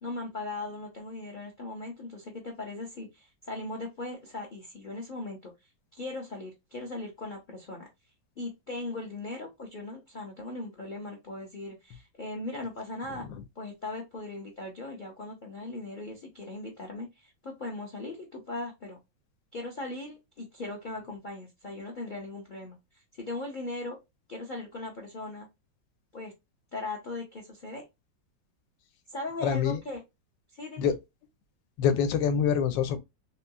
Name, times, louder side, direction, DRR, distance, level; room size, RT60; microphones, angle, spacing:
voice 1, 0.0-5.5 5.9-7.9 8.4-13.3 13.6-19.0 19.5-24.0 24.3-25.5 26.1-26.3 26.7-27.8 29.1-30.0 30.5-30.9, left 2 dB, 45° left, 0.6 m, -39 dB
voice 2, 29.4-29.8 30.8-30.9 31.8-33.0, left 7 dB, 80° left, 1.3 m, -25 dB
3.6 x 2.9 x 2.2 m
omnidirectional pair, 2.0 m